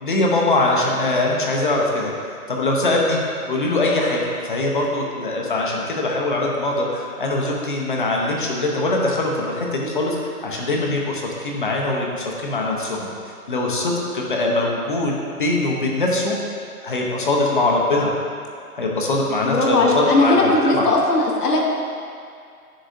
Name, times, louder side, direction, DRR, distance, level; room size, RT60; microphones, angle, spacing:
voice 1, 0.0-2.1 2.5-3.2 3.5-13.1 13.5-15.1 15.4-16.3 16.8-18.1 18.7-20.9, left 2 dB, 35° left, -1 dB, 0.7 m, -22 dB
voice 2, 19.4-21.7, left 2 dB, 80° left, -2 dB, 1.1 m, -18 dB
10.0 x 3.9 x 2.6 m, 2.3 s
hypercardioid pair, 160°, 46 cm